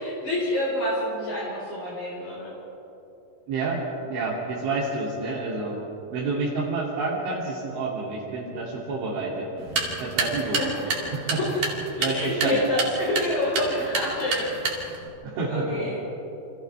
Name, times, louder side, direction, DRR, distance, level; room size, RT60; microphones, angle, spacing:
voice 1, 0.0-2.5 10.4-11.1 11.5-11.6 12.0-14.5 15.5-16.0, left 1 dB, 50° left, -6 dB, 6.0 m, -27 dB
voice 2, 3.5-5.8 6.1-9.5 10.0-10.6 11.1-11.4 12.0-12.6 15.2-15.8, right 3 dB, 80° right, -6 dB, 5.2 m, -29 dB
sound 1, 9.6-15.1, right 3 dB, 50° right, 4.0 m, -30 dB
29.5 x 28.0 x 3.4 m, 2.9 s
omnidirectional pair, 5.4 m